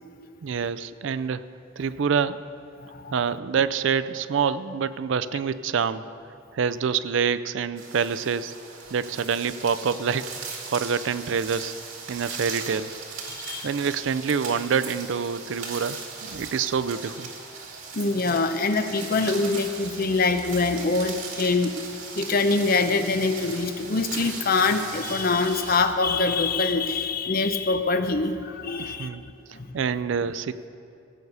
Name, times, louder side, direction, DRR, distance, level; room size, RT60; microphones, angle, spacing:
voice 1, 0.4-1.4 1.8-2.4 3.1-6.1 6.5-8.5 8.9-10.3 10.7-11.7 12.1-12.9 13.6-17.3 28.8-29.2 29.7-30.7, right 6 dB, 60° right, 14 dB, 0.4 m, -26 dB
voice 2, 2.8-3.1 13.3-13.7 17.9-21.8 22.1-29.1 29.5-29.8, left 3 dB, 45° left, 8 dB, 0.6 m, -24 dB
sound 1, 7.8-25.8, right 5 dB, 90° right, 2.1 m, -38 dB
16.0 x 5.5 x 7.9 m, 2.6 s
head